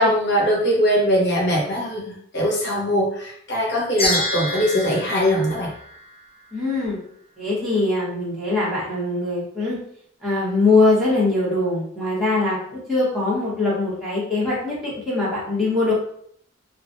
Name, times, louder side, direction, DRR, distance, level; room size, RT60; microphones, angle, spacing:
voice 1, 0.0-5.7, equal, 60° left, -2 dB, 0.9 m, -21 dB
sound 1, 4.0-6.4, left 1 dB, 30° left, 1.2 m, -27 dB
voice 2, 6.5-7.0 7.4-9.8 10.2-15.9, left 2 dB, ahead, -9 dB, 1.1 m, -22 dB
3.0 x 2.4 x 2.6 m, 0.65 s
head